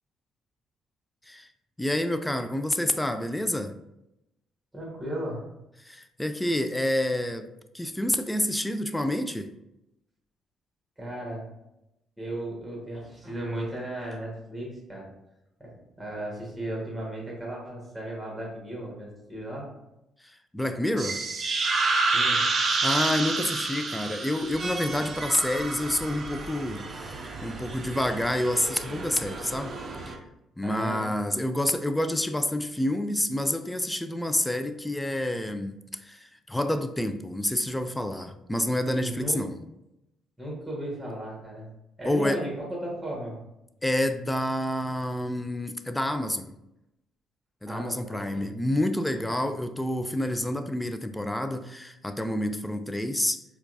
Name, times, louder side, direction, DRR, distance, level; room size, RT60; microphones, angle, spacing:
voice 1, 1.8-3.7 5.8-7.5 7.7-9.5 20.5-21.2 22.6-30.2 30.6-39.6 42.0-42.4 43.8-46.5 47.6-53.4, left 1 dB, 10° left, 0.3 m, -28 dB
voice 2, 4.7-5.5 11.0-11.5 12.2-15.1 15.6-15.7 16.0-19.7 22.1-22.4 30.6-31.0 39.0-39.4 40.4-41.7 42.0-43.4 47.7-48.5, right 1 dB, 10° right, 1.4 m, -35 dB
sound 1, 21.0-30.2, right 3 dB, 45° right, 0.5 m, -30 dB
4.4 x 2.3 x 2.5 m
figure-of-eight pair, 45°, 0 cm